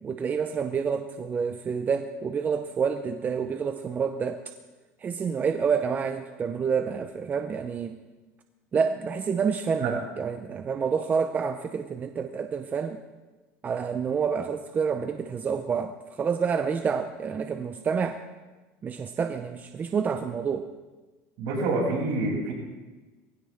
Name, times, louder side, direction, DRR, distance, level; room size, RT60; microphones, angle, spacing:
voice 1, 0.0-4.4 5.0-8.0 8.7-13.0 13.6-18.2 18.8-20.7, right 6 dB, 25° right, 7 dB, 0.7 m, -28 dB
voice 2, 21.4-22.5, right 2 dB, 65° right, -3 dB, 6.8 m, -27 dB
21.0 x 16.0 x 3.5 m, 1.2 s
cardioid pair, 135°, 7 cm